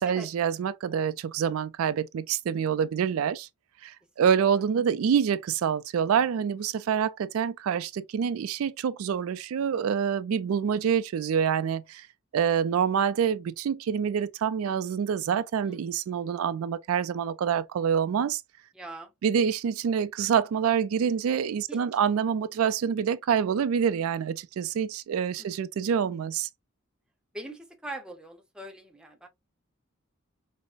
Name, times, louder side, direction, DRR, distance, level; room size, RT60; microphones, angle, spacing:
voice 1, 0.0-3.5 3.8-12.1 12.3-18.4 19.2-26.5, right 7 dB, 80° right, 0.3 m, -26 dB
voice 2, 15.3-15.8 18.7-19.1 21.7-21.8 25.4-25.5 27.3-29.3, right 1 dB, 5° right, 0.7 m, -42 dB
5.2 x 2.0 x 2.5 m
head